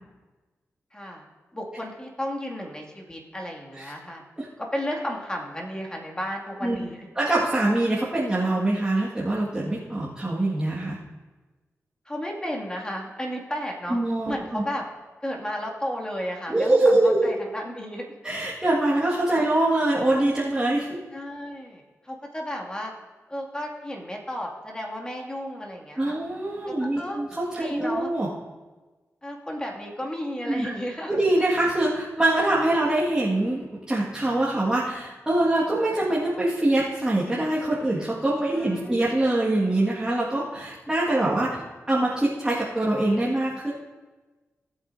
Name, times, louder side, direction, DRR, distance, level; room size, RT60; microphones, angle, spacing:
voice 1, 0.9-1.3 1.5-4.2 4.6-7.0 12.1-14.0 14.3-14.9 15.2-18.1 19.4-19.5 21.1-22.9 23.3-26.2 26.7-27.2 27.6-28.1 29.2-31.1 38.5-39.1 41.1-41.3, equal, 15° left, -1 dB, 2.3 m, -33 dB
voice 2, 7.2-11.0 13.9-14.6 16.5-17.3 18.2-21.0 26.0-28.3 30.5-30.7 31.1-41.6 41.9-43.7, right 1 dB, 15° right, -7 dB, 1.9 m, -24 dB
18.0 x 8.3 x 2.7 m, 1.2 s
cardioid pair, 70°, 5 cm